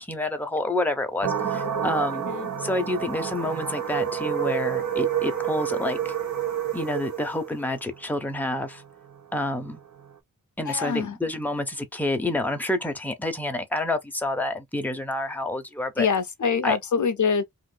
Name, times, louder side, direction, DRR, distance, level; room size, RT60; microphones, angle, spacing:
voice 1, 0.0-2.3 2.6-6.1 6.7-8.8 9.3-9.8 10.6-16.1 16.6-16.8, left 1 dB, 5° left, 0.7 m, -28 dB
sound 1, 1.2-10.1, right 8 dB, 55° right, 1.0 m, -29 dB
voice 2, 10.7-11.1 16.0-17.4, left 6 dB, 55° left, 0.5 m, -24 dB
2.6 x 2.5 x 3.8 m
wide cardioid pair, 120°, 35 cm